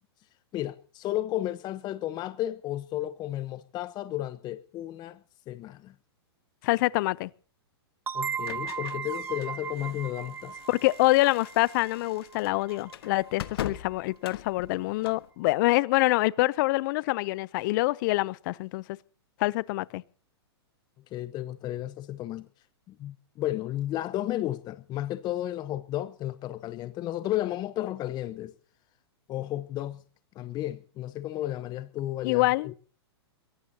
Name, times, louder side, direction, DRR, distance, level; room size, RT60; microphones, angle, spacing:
voice 1, 0.5-5.2 5.5-5.9 8.1-10.6 21.1-22.5 22.9-28.5 29.3-30.0 30.3-32.7, left 14 dB, 30° left, 1.0 m, -33 dB
voice 2, 6.6-7.3 10.7-18.8 19.4-20.0 32.2-32.7, left 20 dB, 50° left, 0.6 m, -25 dB
sound 1, 8.1-13.5, right 6 dB, 15° right, 0.7 m, -37 dB
sound 2, 8.4-15.3, left 11 dB, 65° left, 1.3 m, -42 dB
22.5 x 18.0 x 2.9 m
hypercardioid pair, 115°, 14 cm